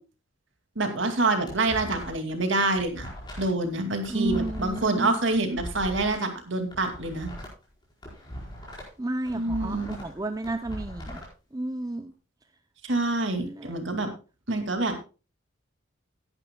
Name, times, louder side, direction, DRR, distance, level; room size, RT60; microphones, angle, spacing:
voice 1, 0.8-3.1 3.4-7.3 9.3-9.9 12.8-14.1 14.5-15.0, right 2 dB, 60° right, 6 dB, 2.4 m, -26 dB
sound 1, 1.1-2.3 2.6-6.2 6.6-9.0 9.2-11.3, equal, 20° left, 4.7 m, -40 dB
voice 2, 4.1-5.1 9.0-11.2 11.5-12.1 13.4-13.7, right 2 dB, 15° right, 8 dB, 0.5 m, -32 dB
16.5 x 10.5 x 2.3 m, 0.31 s
head